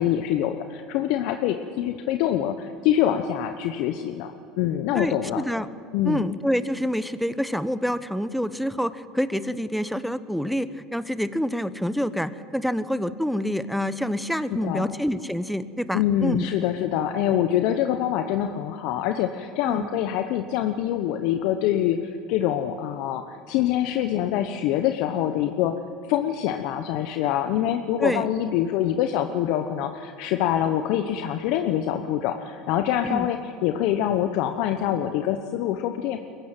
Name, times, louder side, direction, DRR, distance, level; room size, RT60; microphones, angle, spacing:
voice 1, 0.0-5.4 5.9-6.2 14.5-14.9 15.9-25.7 26.1-36.2, left 11 dB, 65° left, 7 dB, 1.0 m, -25 dB
voice 2, 4.9-5.7 6.0-16.5 19.6-19.9 28.0-28.3 33.0-33.3, equal, ahead, 14 dB, 1.0 m, -27 dB
22.5 x 15.0 x 9.2 m, 2.5 s
hypercardioid pair, 90°, 0 cm